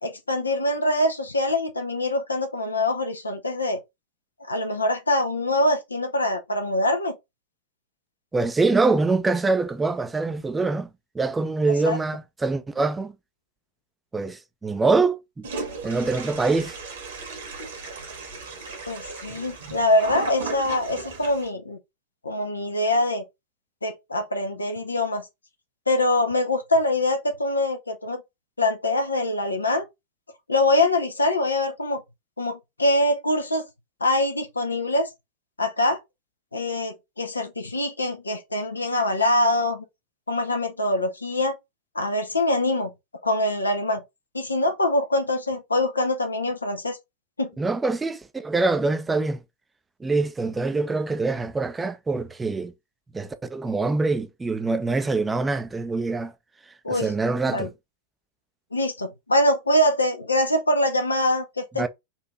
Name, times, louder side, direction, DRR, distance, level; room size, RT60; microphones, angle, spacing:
voice 1, 0.0-3.8 4.5-7.2 11.7-12.0 18.9-21.8 22.2-23.2 23.8-25.3 25.9-28.2 28.6-29.8 30.5-32.0 32.4-33.6 34.0-35.1 35.6-36.0 36.5-39.8 40.3-41.6 41.9-42.9 43.2-44.0 44.3-47.0 47.4-47.5 56.8-57.1 57.5-57.7 58.7-61.9, left 1 dB, 80° left, 0.8 m, -24 dB
voice 2, 8.3-10.9 11.1-13.1 14.1-15.5 15.8-16.7 47.6-49.4 50.0-52.7 53.1-56.3 56.9-57.7 61.8-61.9, right 3 dB, 10° right, 0.6 m, -24 dB
Toilet flush, 15.4-21.5, right 4 dB, 60° right, 1.5 m, -36 dB
4.3 x 2.8 x 3.7 m
figure-of-eight pair, 90°, 0 cm